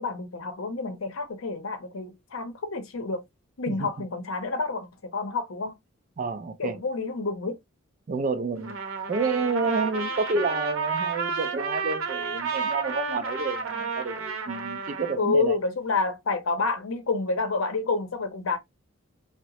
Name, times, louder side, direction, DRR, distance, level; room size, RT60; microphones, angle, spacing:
voice 1, 0.0-3.2 3.6-5.8 6.6-7.6 15.2-18.6, left 3 dB, 75° left, 0.7 m, -28 dB
voice 2, 6.2-6.8 8.1-8.8 9.1-15.6, right 4 dB, 40° right, 0.3 m, -29 dB
Trumpet, 8.6-15.2, right 4 dB, 80° right, 0.7 m, -31 dB
2.8 x 2.0 x 2.8 m
head